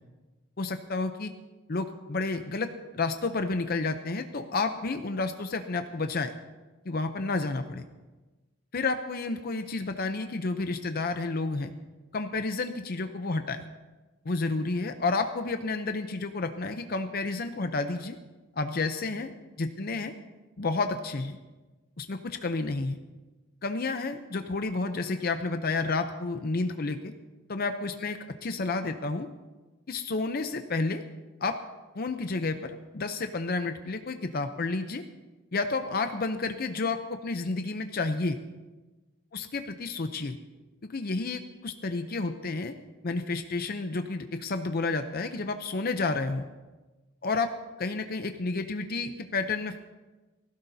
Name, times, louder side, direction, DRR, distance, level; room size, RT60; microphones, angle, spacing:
voice 1, 0.6-1.3 1.7-2.7 2.9-6.3 6.9-7.8 8.7-11.7 12.1-13.6 14.3-18.2 18.6-19.3 19.6-20.1 20.6-21.4 22.0-23.0 23.6-27.1 27.5-29.3 29.9-31.0 31.4-31.6 31.9-35.0 35.5-38.4 39.3-40.4 40.8-42.7 43.0-46.4 47.2-47.5 47.8-49.8, left 3 dB, 45° left, 7 dB, 0.6 m, -30 dB
19.0 x 16.0 x 2.7 m, 1.2 s
head